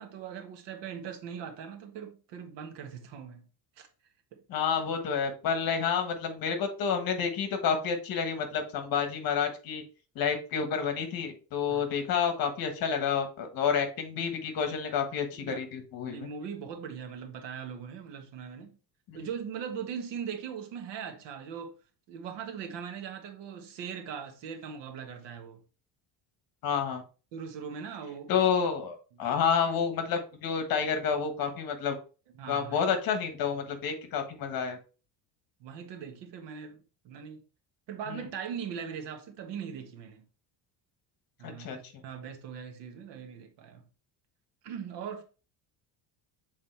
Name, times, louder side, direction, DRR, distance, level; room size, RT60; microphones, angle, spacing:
voice 1, 0.0-3.4 3.8-3.9 4.3-4.4 11.7-11.8 15.4-15.6 16.1-18.8 19.1-21.8 22.1-25.6 27.3-28.4 29.2-29.4 32.3-32.8 35.6-37.4 37.9-40.2 41.4-43.8 44.6-45.2, right 7 dB, 80° right, 1.5 m, -40 dB
voice 2, 4.5-9.8 10.1-16.3 19.1-19.3 26.6-27.0 28.3-31.9 32.5-34.8 38.1-38.2 41.4-41.8, left 6 dB, 55° left, 1.4 m, -29 dB
7.4 x 3.9 x 3.2 m
cardioid pair, 170°, 42 cm